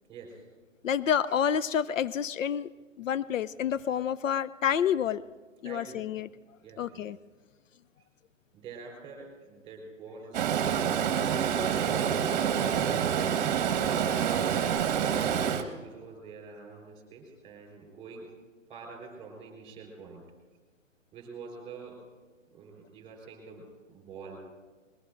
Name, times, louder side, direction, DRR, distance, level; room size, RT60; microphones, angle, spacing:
voice 1, 0.1-0.4 5.6-6.1 6.6-7.1 8.5-10.8 11.2-12.5 14.0-15.4 15.8-18.3 18.7-20.3 21.1-22.0 22.5-24.4, right 4 dB, 15° right, 1 dB, 4.1 m, -46 dB
voice 2, 0.8-2.7 3.0-5.2 5.6-6.3 6.8-7.2, left 8 dB, 75° left, 17 dB, 0.5 m, -28 dB
Stream, 10.3-15.6, right 8 dB, 35° right, 1.2 m, -27 dB
22.5 x 20.5 x 2.5 m, 1.4 s
hypercardioid pair, 145°, 39 cm